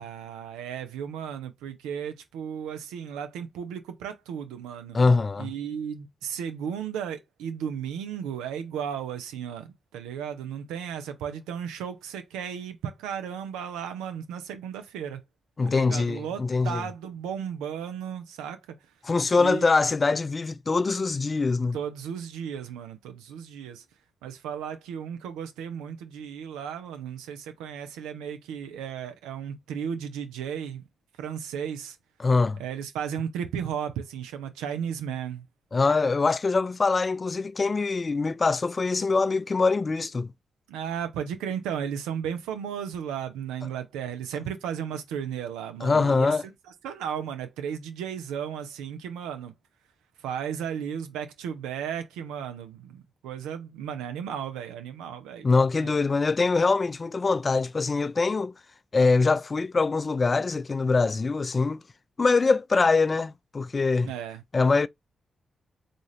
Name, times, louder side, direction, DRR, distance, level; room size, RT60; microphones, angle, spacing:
voice 1, 0.0-5.0 5.4-15.2 15.6-18.8 19.4-19.7 21.7-23.8 24.2-30.8 31.2-32.0 32.6-35.5 40.7-46.3 46.8-49.5 50.2-55.5 55.8-55.9 64.0-64.4, right 8 dB, 85° right, 0.5 m, -34 dB
voice 2, 4.9-5.5 15.6-16.8 19.0-21.8 32.2-32.6 35.7-40.3 45.8-46.4 55.4-58.5 58.9-61.8 62.2-64.1 64.5-64.9, left 4 dB, 45° left, 0.3 m, -23 dB
3.8 x 2.4 x 3.2 m
hypercardioid pair, 40°, 0 cm